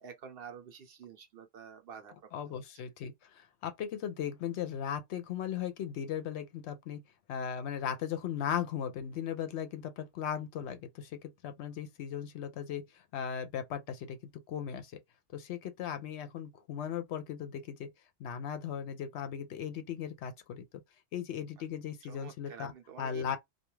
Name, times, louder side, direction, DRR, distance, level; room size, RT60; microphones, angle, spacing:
voice 1, 0.0-2.6 22.1-23.4, right 7 dB, 60° right, 0.7 m, -49 dB
voice 2, 2.3-7.0 7.3-15.0 15.3-17.9 18.2-20.6 21.1-22.7 23.0-23.4, left 8 dB, 70° left, 0.8 m, -37 dB
2.3 x 2.3 x 3.0 m
omnidirectional pair, 1.2 m